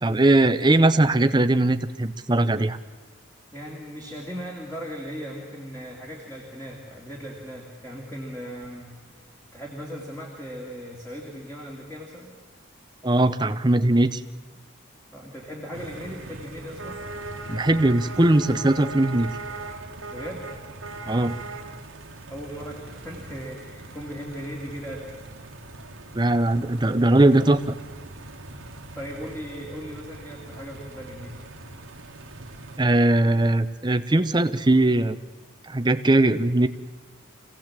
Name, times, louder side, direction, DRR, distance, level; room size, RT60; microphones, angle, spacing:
voice 1, 0.0-2.8 13.0-14.2 17.5-19.3 21.1-21.4 26.1-27.8 32.8-35.2 35.6-36.7, right 2 dB, 20° right, 11 dB, 0.7 m, -20 dB
voice 2, 3.5-8.9 9.5-12.3 15.1-17.0 20.1-20.5 22.3-25.2 28.9-31.4, equal, 10° left, -2 dB, 2.5 m, -38 dB
sound 1, 15.7-32.8, right 2 dB, 85° right, 1.6 m, -40 dB
25.5 x 16.5 x 7.5 m, 1.4 s
head